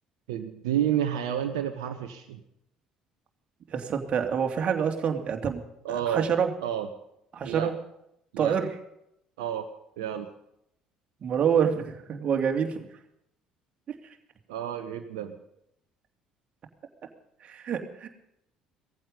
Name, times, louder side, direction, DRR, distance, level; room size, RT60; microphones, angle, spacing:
voice 1, 0.3-2.4 5.8-6.2 6.6-6.9 7.4-7.7 8.3-8.6 9.4-9.6 10.0-10.3 14.5-15.3, right 10 dB, 70° right, 5 dB, 1.2 m, -30 dB
voice 2, 3.7-5.6 5.9-6.5 7.3-7.7 8.4-8.7 11.2-12.9 13.9-14.0 17.4-18.1, right 7 dB, 45° right, 4 dB, 2.7 m, -27 dB
18.0 x 15.0 x 5.4 m, 0.78 s
figure-of-eight pair, 55°, 3 cm